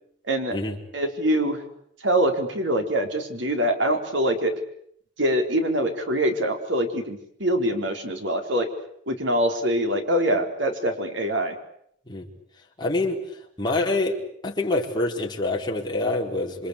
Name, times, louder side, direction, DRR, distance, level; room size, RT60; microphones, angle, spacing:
voice 1, 0.3-0.6 0.9-1.6 2.0-4.5 5.2-8.7 9.1-11.5, right 1 dB, 70° right, 5 dB, 4.5 m, -24 dB
voice 2, 12.8-13.2 13.6-14.2 14.4-16.7, left 2 dB, 25° left, 0 dB, 4.5 m, -26 dB
27.5 x 25.0 x 8.5 m, 0.70 s
head